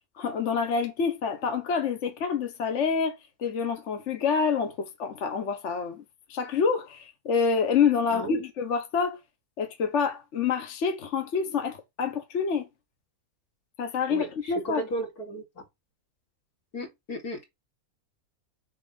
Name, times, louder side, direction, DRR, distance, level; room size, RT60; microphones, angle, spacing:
voice 1, 0.2-6.0 6.3-9.2 9.6-12.7 13.8-14.9, left 6 dB, 55° left, 1.2 m, -27 dB
voice 2, 14.1-15.6 16.7-17.5, right 1 dB, 75° left, 2.9 m, -34 dB
6.9 x 3.2 x 5.2 m
omnidirectional pair, 1.6 m